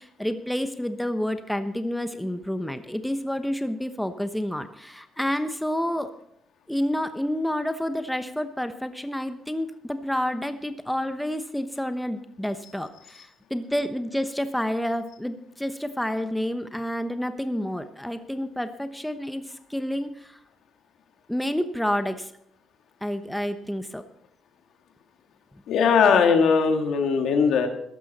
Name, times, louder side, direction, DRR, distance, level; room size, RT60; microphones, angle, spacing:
voice 1, 0.0-6.1 6.7-20.4 21.3-22.3 23.0-24.0, equal, 5° left, 9 dB, 1.0 m, -29 dB
voice 2, 25.7-27.7, left 6 dB, 75° left, 5 dB, 1.8 m, -19 dB
15.0 x 11.5 x 4.2 m, 0.74 s
cardioid pair, 90°, 0 cm